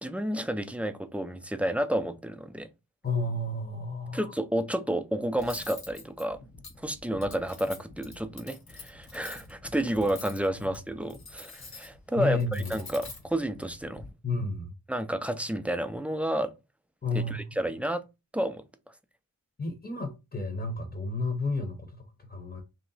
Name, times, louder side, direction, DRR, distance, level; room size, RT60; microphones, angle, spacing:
voice 1, 0.0-2.7 4.1-6.4 6.8-14.1 14.9-16.5 17.3-18.0 18.3-18.6, right 1 dB, 5° right, 0.4 m, -30 dB
voice 2, 3.0-4.3 12.2-12.7 14.2-14.7 17.0-17.4 19.6-22.6, left 3 dB, 25° left, 0.8 m, -31 dB
Cutlery silverware, 5.4-14.1, left 3 dB, 70° left, 1.0 m, -46 dB
3.1 x 2.8 x 3.9 m
wide cardioid pair, 100°, 37 cm